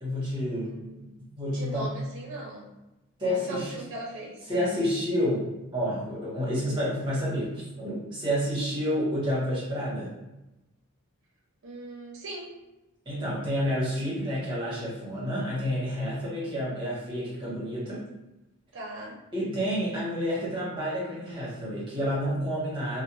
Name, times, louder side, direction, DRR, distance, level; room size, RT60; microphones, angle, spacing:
voice 1, 0.0-2.0 3.2-3.7 4.5-7.5 7.8-10.1 13.0-18.0 19.3-23.0, equal, 20° right, -7 dB, 1.1 m, -29 dB
voice 2, 0.6-1.1 1.5-2.7 3.3-4.4 11.6-12.5 18.7-19.2, right 1 dB, 60° right, -3 dB, 0.6 m, -39 dB
2.4 x 2.1 x 2.9 m, 0.98 s
head